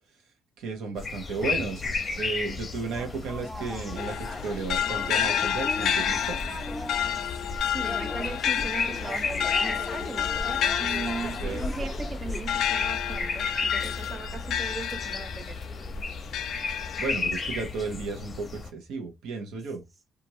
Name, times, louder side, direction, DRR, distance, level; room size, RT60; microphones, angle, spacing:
voice 1, 0.6-1.8 2.2-6.4 11.4-11.6 17.0-19.8, right 4 dB, 85° right, 0.8 m, -33 dB
sound 1, 1.0-18.7, left 4 dB, 35° left, 0.7 m, -34 dB
sound 2, 2.8-12.4, left 1 dB, 5° left, 0.7 m, -39 dB
sound 3, 4.0-15.6 16.1-17.1, left 10 dB, 75° left, 0.4 m, -30 dB
voice 2, 7.6-15.6, right 4 dB, 35° right, 0.4 m, -38 dB
2.9 x 2.5 x 2.7 m
cardioid pair, 90°, 0 cm